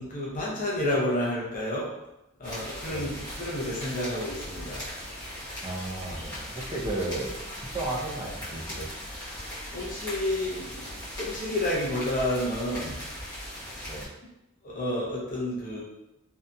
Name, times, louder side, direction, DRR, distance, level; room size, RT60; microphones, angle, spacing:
voice 1, 0.0-1.9 2.4-3.1 3.4-4.8 9.7-10.9 11.2-13.0 14.6-15.8, left 1 dB, 40° left, -5 dB, 0.6 m, -30 dB
sound 1, 2.4-14.1, equal, 20° left, 0.9 m, -39 dB
voice 2, 5.6-7.3 7.6-8.9 13.9-14.1, right 2 dB, 20° right, -3 dB, 0.5 m, -34 dB
2.7 x 2.5 x 2.2 m, 0.94 s
head